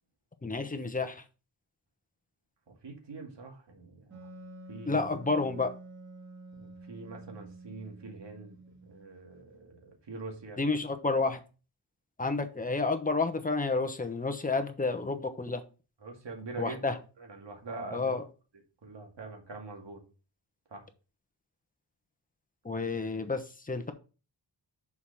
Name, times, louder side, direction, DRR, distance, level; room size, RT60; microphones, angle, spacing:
voice 1, 0.4-1.2 4.8-5.7 10.6-11.4 12.2-15.6 16.6-17.0 17.9-18.2 22.6-23.9, left 3 dB, 20° left, 6 dB, 1.0 m, -30 dB
voice 2, 2.7-4.3 4.7-5.0 6.6-8.6 8.9-10.6 16.0-16.8 17.2-18.2 18.8-20.0 20.7-20.8, right 3 dB, 85° right, 2 dB, 2.2 m, -44 dB
Wind instrument woodwind instrument, 4.1-9.5, right 1 dB, 40° right, 2.4 m, -49 dB
6.6 x 4.9 x 5.6 m, 0.34 s
wide cardioid pair, 130°, 42 cm